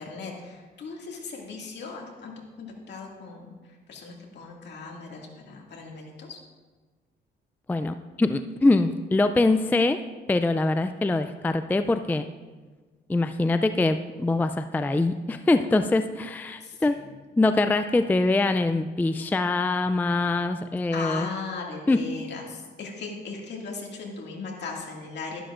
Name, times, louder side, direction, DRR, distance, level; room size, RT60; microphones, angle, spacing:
voice 1, 0.0-2.3 2.6-6.4 16.6-17.1 20.9-25.4, left 4 dB, 60° left, -1 dB, 2.2 m, -38 dB
voice 2, 7.7-10.0 10.3-12.3 13.1-17.0 17.4-21.3 21.9-22.0, left 2 dB, 10° left, 9 dB, 0.3 m, -23 dB
12.0 x 11.5 x 2.5 m, 1.3 s
cardioid pair, 90°, 20 cm